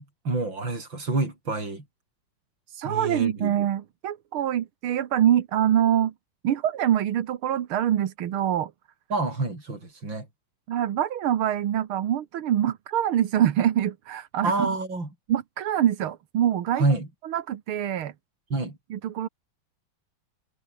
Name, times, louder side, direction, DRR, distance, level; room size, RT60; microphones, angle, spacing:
voice 1, 0.0-1.8 2.8-3.5 9.1-10.3 14.4-15.1 16.8-17.1 18.5-18.8, right 3 dB, 65° right, 7.4 m, -27 dB
voice 2, 2.7-6.1 6.4-8.7 10.7-14.8 15.3-16.8 17.2-18.1 18.9-19.3, right 10 dB, 90° right, 2.1 m, -25 dB
omnidirectional pair, 2.3 m